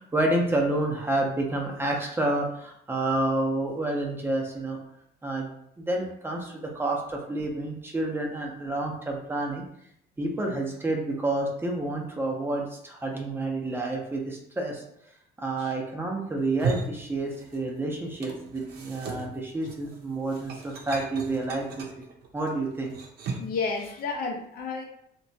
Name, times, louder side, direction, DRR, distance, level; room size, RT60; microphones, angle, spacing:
voice 1, 0.0-4.8 5.2-5.5 5.8-9.6 10.2-14.8 15.4-21.8 22.3-22.9, right 2 dB, 15° right, 0 dB, 0.5 m, -29 dB
sound 1, 16.4-17.8 18.0-23.6, right 4 dB, 70° right, 0.5 m, -36 dB
voice 2, 23.4-24.9, left 4 dB, 65° left, 3 dB, 0.5 m, -31 dB
2.8 x 2.2 x 2.6 m, 0.72 s
cardioid pair, 110°, 17 cm